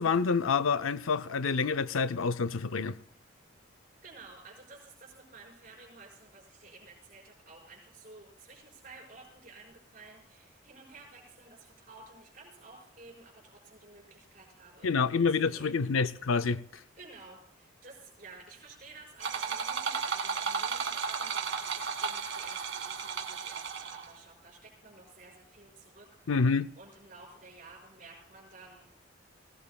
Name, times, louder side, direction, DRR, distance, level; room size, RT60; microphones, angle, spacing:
voice 1, 0.0-3.0 14.8-16.6 26.3-26.7, left 5 dB, 90° left, 0.6 m, -27 dB
voice 2, 4.0-15.8 17.0-26.4 26.8-28.9, right 3 dB, 40° right, 5.8 m, -53 dB
sound 1, 19.2-24.2, right 5 dB, 70° right, 2.1 m, -34 dB
21.0 x 19.0 x 2.4 m
head